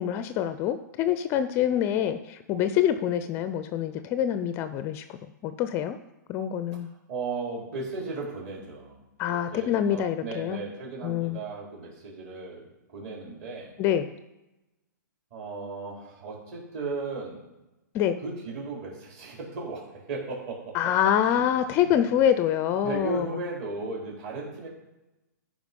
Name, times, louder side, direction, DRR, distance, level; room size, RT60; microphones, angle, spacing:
voice 1, 0.0-5.0 5.4-6.0 6.3-6.9 9.2-10.6 11.0-11.4 13.8-14.1 17.9-18.2 20.7-23.3, left 10 dB, 25° left, 11 dB, 0.4 m, -25 dB
voice 2, 7.1-9.0 9.3-12.7 12.9-13.7 15.3-17.5 18.2-20.9 21.2-22.2 22.8-24.7, right 3 dB, 40° right, -3 dB, 4.1 m, -36 dB
14.0 x 5.0 x 5.3 m, 1.0 s
hypercardioid pair, 150°, 10 cm